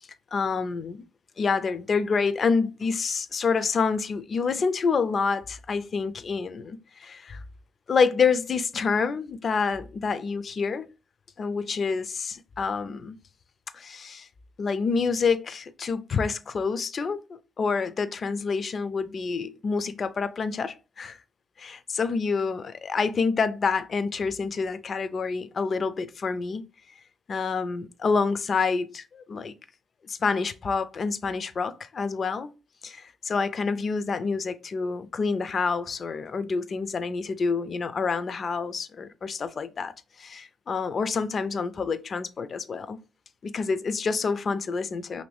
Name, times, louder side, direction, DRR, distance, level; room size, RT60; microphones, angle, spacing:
voice 1, 0.3-1.0 1.4-7.4 7.9-10.9 11.4-13.2 13.7-14.3 14.6-21.2 21.6-26.6 27.3-29.5 30.1-32.5 32.8-43.0 43.4-45.2, left 5 dB, 45° left, 0.3 m, -27 dB
2.9 x 2.6 x 3.2 m
cardioid pair, 90°, 0 cm